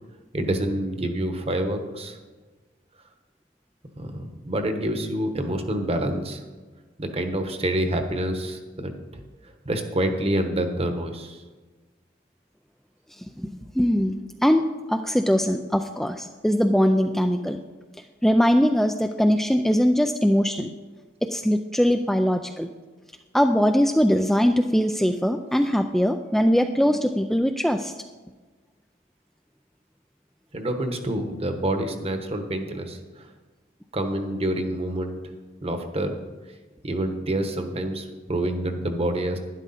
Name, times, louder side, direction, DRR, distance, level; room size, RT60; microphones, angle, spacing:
voice 1, 0.3-2.2 4.0-6.4 7.0-9.2 9.6-11.4 30.5-33.3 33.9-35.2 35.6-36.2 36.8-39.4, right 1 dB, 30° right, 6 dB, 1.1 m, -27 dB
voice 2, 13.4-14.6 14.9-17.6 18.2-20.7 21.2-22.7 23.3-27.9, equal, ahead, 5 dB, 0.3 m, -21 dB
11.5 x 10.5 x 4.2 m, 1.3 s
head